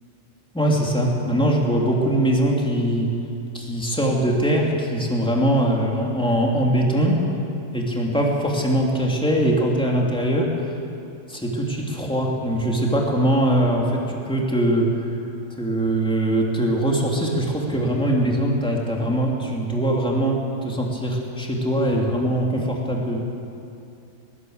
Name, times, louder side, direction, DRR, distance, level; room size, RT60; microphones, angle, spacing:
voice 1, 0.5-3.1 3.5-7.2 7.7-10.7 11.3-15.1 15.5-23.2, right 1 dB, 5° left, -2 dB, 3.0 m, -22 dB
19.5 x 18.5 x 8.1 m, 2.6 s
omnidirectional pair, 1.3 m